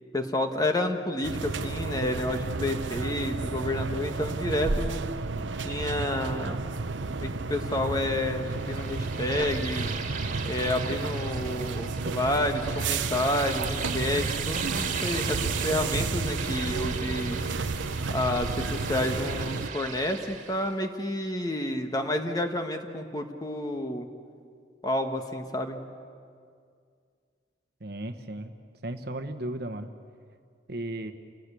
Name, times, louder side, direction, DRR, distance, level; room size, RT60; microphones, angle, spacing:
voice 1, 0.1-5.0 5.6-6.6 7.2-9.9 10.4-17.4 18.1-24.1 24.8-25.8, left 1 dB, 20° left, 5 dB, 1.4 m, -30 dB
sound 1, 1.2-19.7, right 3 dB, 80° right, 0.8 m, -31 dB
sound 2, 8.5-20.7, right 5 dB, 40° right, 2.0 m, -38 dB
voice 2, 27.8-28.5 28.8-29.9 30.7-31.1, right 1 dB, 55° right, 8 dB, 1.2 m, -35 dB
28.5 x 18.5 x 8.5 m, 2.2 s
head